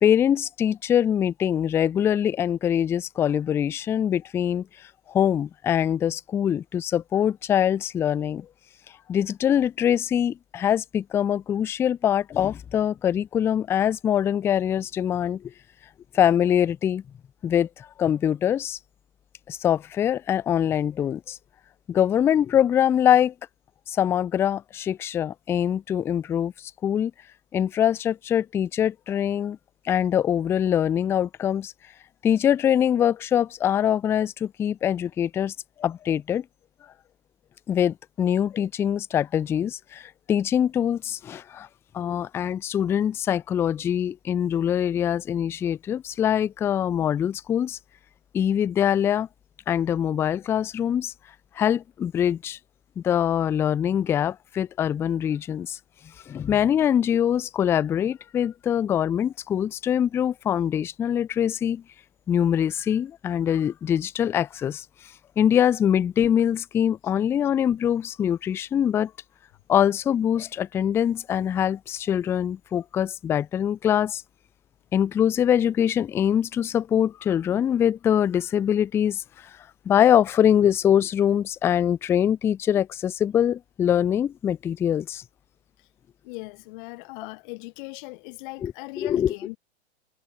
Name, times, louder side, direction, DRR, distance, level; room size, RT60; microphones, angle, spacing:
voice 1, 0.0-8.5 9.1-15.5 16.1-17.0 17.4-18.8 19.5-21.4 21.9-23.3 23.9-27.1 27.5-29.6 29.9-31.7 32.2-35.5 35.8-36.5 37.7-41.7 41.9-47.8 48.3-49.3 49.7-51.1 51.6-52.6 53.0-55.8 56.3-61.8 62.3-64.9 65.4-69.1 69.7-74.2 74.9-79.2 79.9-85.2 88.6-88.7 89.0-89.3, left 9 dB, 10° left, 0.3 m, -23 dB
voice 2, 86.2-89.6, left 27 dB, 45° left, 1.3 m, -39 dB
hypercardioid pair, 110°, 35 cm